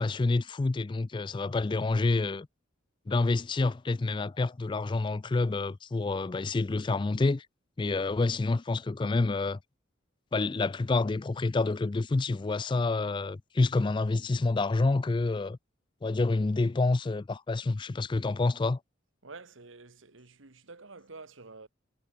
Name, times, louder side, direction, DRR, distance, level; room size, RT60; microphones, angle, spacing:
voice 1, 0.0-2.5 3.1-7.5 7.8-9.6 10.3-15.6 16.0-18.8, left 3 dB, 25° left, 0.3 m, -28 dB
voice 2, 19.2-21.7, right 3 dB, 80° right, 1.6 m, -48 dB
head